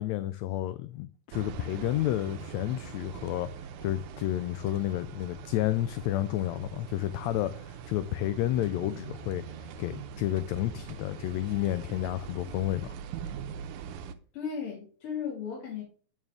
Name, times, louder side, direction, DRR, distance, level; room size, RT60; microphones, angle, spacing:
voice 1, 0.0-13.0, left 14 dB, 80° left, 1.6 m, -31 dB
sound 1, 1.3-14.2, right 8 dB, 85° right, 2.1 m, -42 dB
voice 2, 14.3-15.8, left 7 dB, 45° left, 3.1 m, -35 dB
8.7 x 6.5 x 3.5 m
omnidirectional pair, 3.4 m